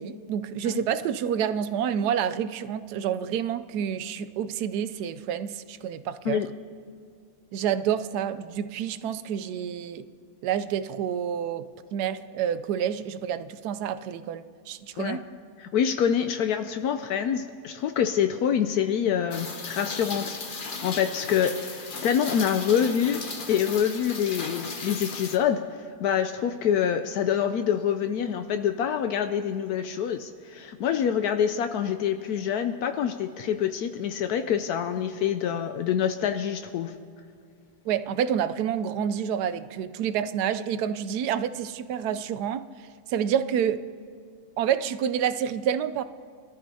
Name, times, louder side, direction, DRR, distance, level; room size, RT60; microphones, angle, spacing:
voice 1, 0.0-6.4 7.5-10.0 10.4-11.7 11.9-15.3 37.9-42.7 43.1-43.9 44.6-46.0, right 9 dB, 80° right, 12 dB, 1.1 m, -28 dB
voice 2, 15.7-23.2 23.5-25.6 26.0-36.9, left 8 dB, 75° left, 8 dB, 1.1 m, -26 dB
Rain, 19.3-25.4, left 4 dB, 40° left, 0.9 m, -36 dB
22.0 x 13.5 x 2.8 m, 2.3 s
omnidirectional pair, 1.7 m